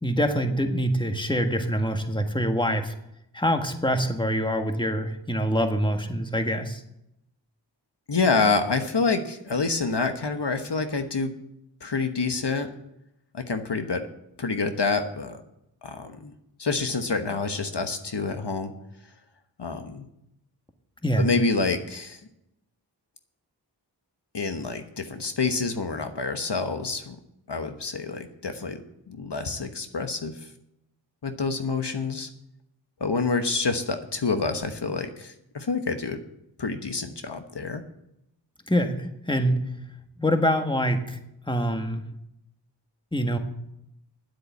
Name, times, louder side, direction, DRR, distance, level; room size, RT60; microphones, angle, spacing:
voice 1, 0.0-2.9 3.3-6.8 21.0-21.3 38.7-39.6 40.2-41.2 41.5-42.0 43.1-43.4, equal, 10° left, 5 dB, 1.6 m, -25 dB
voice 2, 8.1-11.3 11.8-12.7 13.3-14.0 14.4-15.4 15.8-16.3 16.6-18.7 19.6-20.1 21.2-22.2 24.3-27.2 27.5-30.4 31.2-32.3 33.0-36.2 36.6-37.8, left 4 dB, 65° left, 7 dB, 1.2 m, -27 dB
10.0 x 8.2 x 8.4 m, 0.82 s
wide cardioid pair, 40°, 44 cm